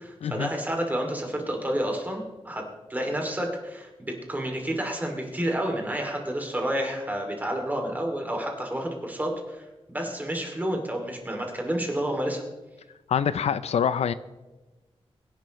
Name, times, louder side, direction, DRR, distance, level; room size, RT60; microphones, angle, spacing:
voice 1, 0.0-2.6 2.9-12.4, right 1 dB, 15° right, 1 dB, 2.6 m, -30 dB
voice 2, 13.1-14.1, left 8 dB, 85° left, 15 dB, 0.5 m, -25 dB
23.0 x 11.0 x 3.1 m, 1.1 s
wide cardioid pair, 135°, 11 cm